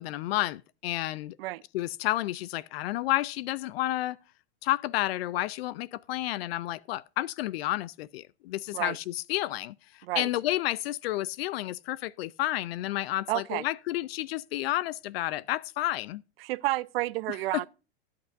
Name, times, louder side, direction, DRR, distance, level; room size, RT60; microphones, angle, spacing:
voice 1, 0.0-1.4 1.7-4.2 4.6-9.7 10.2-16.2 17.5-17.6, left 15 dB, 70° left, 0.5 m, -31 dB
voice 2, 13.3-13.6 16.4-17.7, right 18 dB, 65° right, 0.7 m, -30 dB
18.5 x 8.5 x 2.6 m
supercardioid pair, 155°, 31 cm